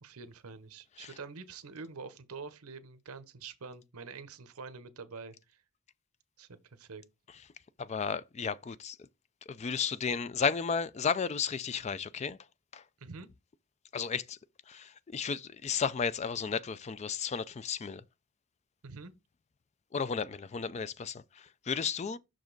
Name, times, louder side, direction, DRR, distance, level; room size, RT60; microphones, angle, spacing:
voice 1, 0.0-5.6 6.4-7.0 13.0-13.3 18.8-19.1, right 4 dB, 85° right, 0.8 m, -46 dB
voice 2, 7.8-9.0 9.5-12.4 12.7-12.8 13.9-14.4 14.7-18.0 19.9-22.2, left 6 dB, 30° left, 0.3 m, -33 dB
6.0 x 5.1 x 3.9 m
head